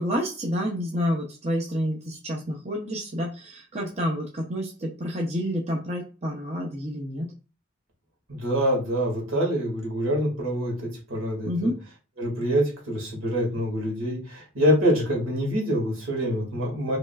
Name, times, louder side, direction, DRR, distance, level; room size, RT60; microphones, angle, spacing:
voice 1, 0.0-7.3 11.4-11.8, equal, 30° right, -1 dB, 0.7 m, -29 dB
voice 2, 8.3-11.7 12.2-17.0, equal, 75° right, -2 dB, 2.1 m, -25 dB
4.9 x 3.1 x 2.4 m, 0.32 s
head